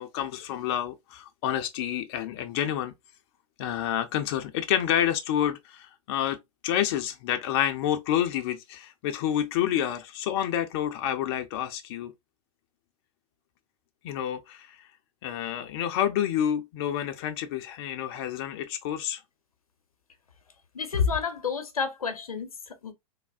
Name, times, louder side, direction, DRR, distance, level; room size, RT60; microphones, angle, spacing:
voice 1, 0.0-2.9 3.6-6.4 6.6-12.1 14.0-14.9 15.2-19.2, left 10 dB, 45° left, 0.5 m, -29 dB
voice 2, 20.7-22.9, left 6 dB, 90° left, 0.7 m, -29 dB
3.3 x 2.0 x 2.4 m
hypercardioid pair, 110°, 18 cm